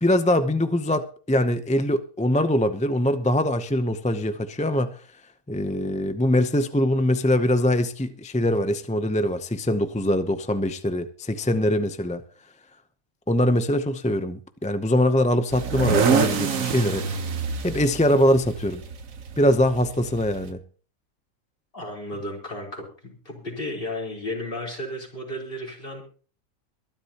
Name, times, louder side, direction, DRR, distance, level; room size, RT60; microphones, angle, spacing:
voice 1, 0.0-5.0 5.5-12.2 13.3-17.2 17.6-18.8 19.4-20.6, left 1 dB, 10° left, 0.4 m, -23 dB
sound 1, 15.5-20.5, right 6 dB, 70° right, 1.5 m, -26 dB
voice 2, 21.7-26.0, left 1 dB, 40° left, 4.5 m, -33 dB
22.5 x 11.5 x 2.9 m
omnidirectional pair, 1.5 m